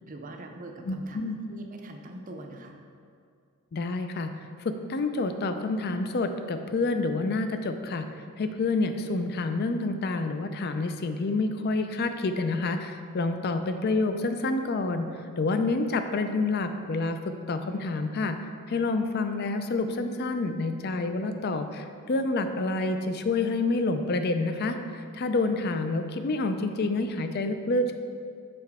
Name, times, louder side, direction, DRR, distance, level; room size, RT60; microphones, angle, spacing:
voice 1, 0.1-1.2 1.5-2.8, right 2 dB, 35° right, 3 dB, 0.5 m, -42 dB
voice 2, 0.9-1.4 3.7-4.3 4.6-8.1 8.4-15.1 15.4-18.4 18.7-27.9, left 3 dB, 45° left, 8 dB, 0.4 m, -28 dB
6.8 x 5.4 x 3.5 m, 2.3 s
head